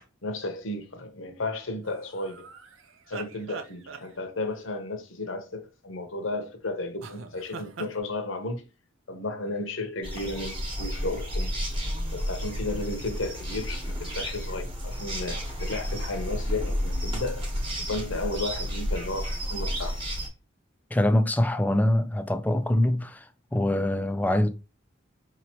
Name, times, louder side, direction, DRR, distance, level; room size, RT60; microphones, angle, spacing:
voice 1, 0.2-2.5 3.1-8.6 9.1-11.5 12.1-17.4 17.8-20.0, left 2 dB, 75° left, 1.0 m, -33 dB
sound 1, 1.8-4.6 7.0-8.0, right 5 dB, 80° right, 0.6 m, -42 dB
sound 2, 10.0-20.3, equal, 25° right, 1.1 m, -31 dB
voice 2, 20.9-24.5, left 1 dB, 10° left, 0.4 m, -24 dB
5.0 x 3.0 x 2.9 m
head